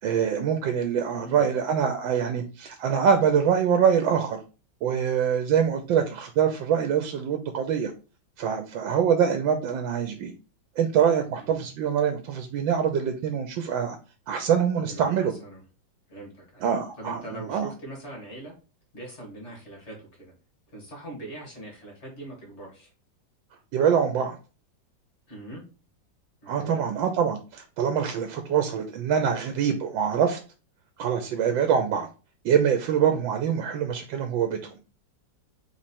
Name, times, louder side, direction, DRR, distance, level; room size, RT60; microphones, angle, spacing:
voice 1, 0.0-4.4 4.8-7.9 8.4-10.3 10.8-14.0 14.3-15.3 16.6-17.7 23.7-24.4 26.5-30.4 31.0-32.1 32.4-34.6, right 7 dB, 85° right, 6 dB, 1.3 m, -24 dB
voice 2, 1.1-1.4 11.4-11.6 14.8-15.6 16.1-16.7 17.0-18.5 18.9-20.3 20.7-22.9 25.3-25.6 26.4-26.8, right 1 dB, 40° left, -1 dB, 1.7 m, -41 dB
3.5 x 3.1 x 4.2 m, 0.33 s
omnidirectional pair, 2.0 m